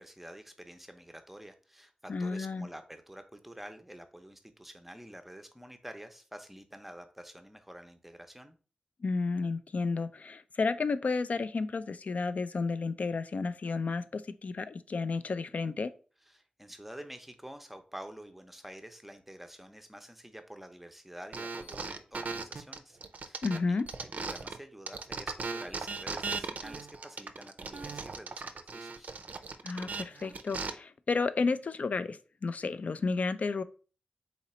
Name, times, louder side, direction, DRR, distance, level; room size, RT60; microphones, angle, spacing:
voice 1, 0.0-8.6 16.3-29.1, right 1 dB, 5° right, 7 dB, 0.6 m, -48 dB
voice 2, 2.1-2.7 9.0-15.9 23.4-23.8 29.6-33.6, left 4 dB, 60° left, 13 dB, 0.3 m, -32 dB
sound 1, 21.3-24.6 24.9-30.7, right 4 dB, 70° right, 0.4 m, -38 dB
4.0 x 2.8 x 4.2 m, 0.38 s
wide cardioid pair, 100°, 3 cm